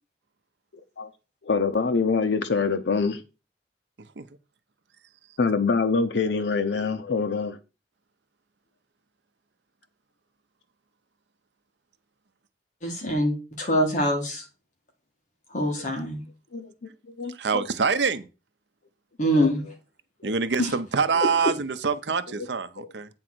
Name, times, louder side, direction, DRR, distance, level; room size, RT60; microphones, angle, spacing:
voice 1, 1.4-3.2 5.4-7.6 16.5-16.7 17.2-17.6 19.2-19.5 20.2-20.3 22.4-22.5 22.8-22.9, left 4 dB, 75° left, 0.7 m, -25 dB
voice 2, 12.8-14.4 15.5-16.2 19.2-19.6 20.6-20.7, equal, 45° left, 2.0 m, -24 dB
voice 3, 17.3-18.3 20.2-23.1, right 5 dB, 75° right, 0.7 m, -26 dB
8.8 x 3.8 x 6.1 m
head